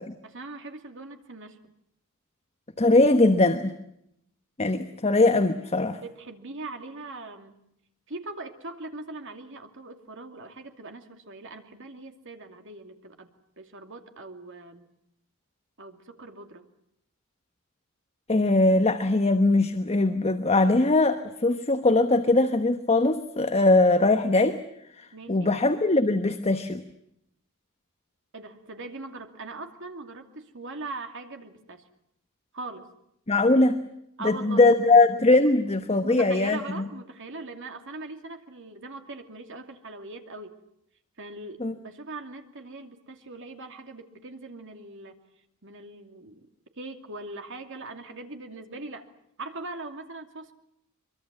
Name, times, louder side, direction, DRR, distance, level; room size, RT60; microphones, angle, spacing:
voice 1, 0.2-1.6 5.9-7.6 8.1-13.3 13.6-14.9 15.8-16.7 25.1-25.5 28.3-31.8 32.5-32.9 34.2-34.6 35.5-35.6 36.0-40.5 41.2-45.2 45.6-46.5 46.8-49.1 49.4-50.5, right 3 dB, 60° right, 5 dB, 2.6 m, -41 dB
voice 2, 2.8-3.7 4.6-6.0 18.3-24.6 25.0-26.8 33.3-33.8 34.2-36.8 41.6-41.7, left 2 dB, 30° left, 8 dB, 1.1 m, -21 dB
24.0 x 23.5 x 7.5 m, 0.77 s
head